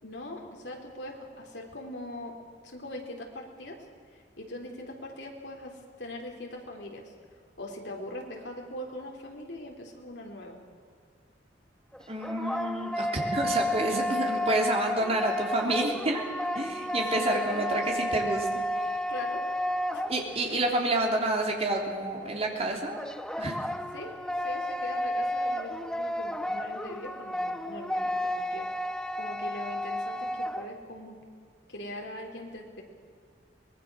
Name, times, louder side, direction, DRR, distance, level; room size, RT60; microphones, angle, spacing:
voice 1, 0.0-2.4 2.6-3.8 4.1-7.1 7.6-10.6 16.8-17.8 19.1-19.4 19.9-20.0 20.5-20.6 23.9-24.1 24.4-28.7 29.2-31.1 31.7-32.8, left 1 dB, 70° left, 1 dB, 3.9 m, -41 dB
sound 1, 11.9-20.6 23.0-30.7, left 1 dB, 5° left, 0.6 m, -32 dB
voice 2, 12.1-16.2 16.5-18.5 18.7-19.0 20.1-23.0 23.4-23.5, right 2 dB, 35° right, 1 dB, 3.3 m, -29 dB
23.5 x 20.5 x 6.4 m, 2.1 s
head